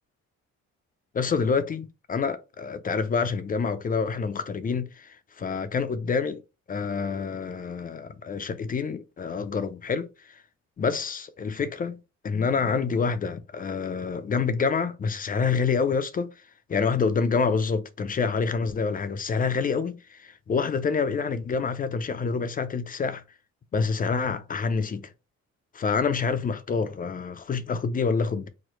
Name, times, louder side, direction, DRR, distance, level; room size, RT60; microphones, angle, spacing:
voice 1, 1.1-6.4 6.7-10.4 10.8-12.0 12.2-16.3 16.7-23.2 23.7-25.1 25.7-28.5, left 5 dB, 30° left, 0.4 m, -27 dB
3.0 x 2.0 x 3.0 m
cardioid pair, 90°, 30 cm